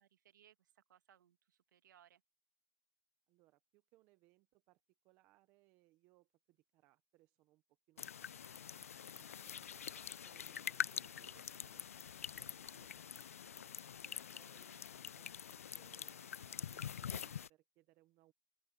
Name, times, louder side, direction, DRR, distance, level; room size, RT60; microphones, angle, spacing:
voice 1, 0.0-2.2, right 10 dB, 35° right, 2.1 m, -68 dB
voice 2, 3.3-7.6 7.9-9.8 10.2-12.9 13.2-13.7 14.0-18.3, right 18 dB, 10° right, 0.8 m, -71 dB
sound 1, 8.0-17.5, left 8 dB, 30° left, 0.4 m, -45 dB
open air
hypercardioid pair, 165°, 17 cm